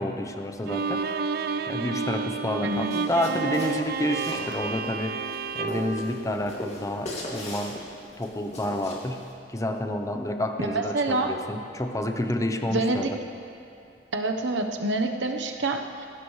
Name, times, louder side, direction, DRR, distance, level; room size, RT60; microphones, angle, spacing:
voice 1, 0.0-1.3 1.7-7.8 8.2-13.2, left 1 dB, 15° left, 5 dB, 0.8 m, -29 dB
Bowed string instrument, 0.7-6.9, right 5 dB, 55° right, 0.4 m, -31 dB
sound 1, 2.7-9.3, left 1 dB, 35° left, 2.4 m, -40 dB
voice 2, 10.7-11.3 12.7-13.1 14.1-16.1, right 2 dB, 80° right, 4 dB, 1.0 m, -27 dB
19.0 x 15.5 x 3.2 m, 2.6 s
head